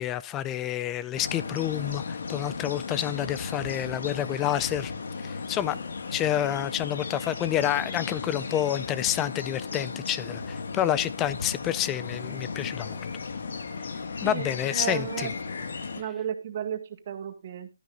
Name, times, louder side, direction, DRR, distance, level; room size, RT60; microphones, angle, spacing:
voice 1, 0.0-4.9 5.2-5.8 6.1-13.0 14.2-15.3, left 11 dB, 15° left, 0.4 m, -29 dB
sound 1, 1.2-16.0, left 4 dB, 65° left, 1.7 m, -35 dB
voice 2, 14.7-15.3 16.0-17.7, right 9 dB, 40° right, 1.8 m, -33 dB
12.5 x 10.5 x 2.5 m
hypercardioid pair, 160°, 0 cm